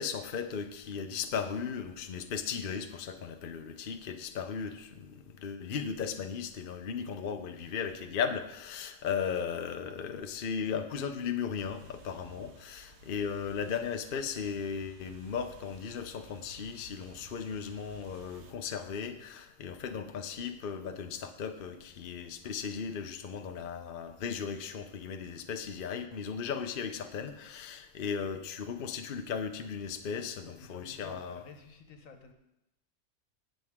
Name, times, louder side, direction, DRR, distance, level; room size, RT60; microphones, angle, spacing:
voice 1, 0.0-31.4, left 6 dB, 50° left, 7 dB, 0.9 m, -36 dB
sound 1, 11.6-18.5, right 5 dB, 60° right, 1.1 m, -55 dB
voice 2, 30.4-32.3, left 5 dB, 85° left, 6 dB, 1.5 m, -51 dB
17.5 x 6.4 x 3.6 m, 0.87 s
omnidirectional pair, 1.4 m